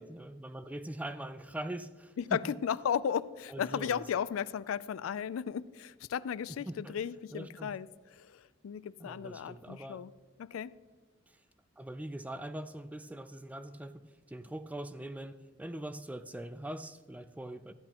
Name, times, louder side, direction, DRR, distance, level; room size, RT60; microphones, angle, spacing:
voice 1, 0.0-2.4 3.5-4.0 6.7-7.0 7.3-7.7 9.0-10.0 11.3-11.4 11.8-17.7, right 1 dB, 5° right, 12 dB, 0.3 m, -42 dB
voice 2, 2.2-10.1 10.4-10.7, left 8 dB, 85° left, 17 dB, 0.3 m, -35 dB
14.5 x 10.5 x 2.9 m, 1.3 s
head